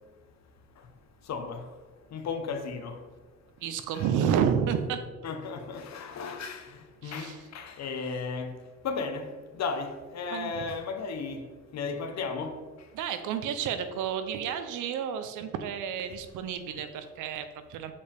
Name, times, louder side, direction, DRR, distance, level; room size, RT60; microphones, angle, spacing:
voice 1, 1.3-1.6 2.1-3.0 3.9-4.1 5.2-6.7 7.0-8.5 8.8-9.3 9.6-11.4 11.7-12.5, left 4 dB, 60° left, 1.0 m, -34 dB
voice 2, 3.6-5.0 7.0-7.4 10.3-10.6 12.9-17.9, right 8 dB, 90° right, 0.7 m, -30 dB
6.9 x 5.1 x 3.4 m
cardioid pair, 90°, 30 cm